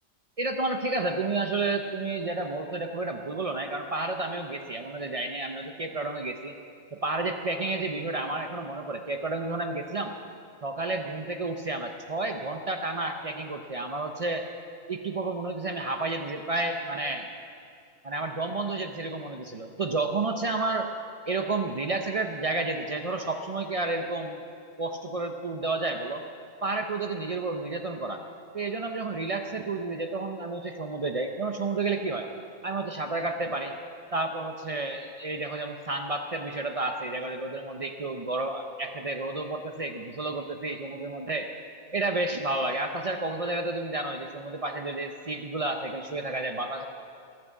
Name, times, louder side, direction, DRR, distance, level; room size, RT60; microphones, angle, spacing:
voice 1, 0.4-6.6 6.9-10.1 10.6-14.5 14.9-17.3 18.0-20.9 21.3-24.4 24.8-26.2 26.6-28.2 28.5-32.3 32.6-33.7 34.1-41.5 41.9-46.9, right 2 dB, 70° right, 5 dB, 0.3 m, -31 dB
17.5 x 6.2 x 8.1 m, 2.4 s
omnidirectional pair, 1.5 m